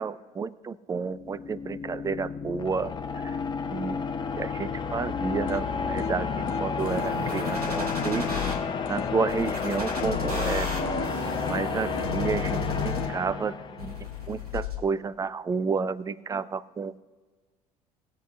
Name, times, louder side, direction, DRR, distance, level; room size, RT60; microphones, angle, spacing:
voice 1, 0.0-2.9 3.2-3.3 3.7-4.0 4.4-8.3 8.9-10.7 11.5-17.0, right 5 dB, 20° right, 18 dB, 0.4 m, -31 dB
sound 1, 1.0-14.1, left 5 dB, 25° left, 0.8 m, -31 dB
sound 2, 5.5-13.5, left 5 dB, 40° left, 1.2 m, -41 dB
sound 3, 6.8-8.5 9.3-13.3 13.8-14.8, left 4 dB, 85° right, 1.8 m, -33 dB
18.5 x 7.5 x 2.4 m, 1.3 s
figure-of-eight pair, 65°, 19 cm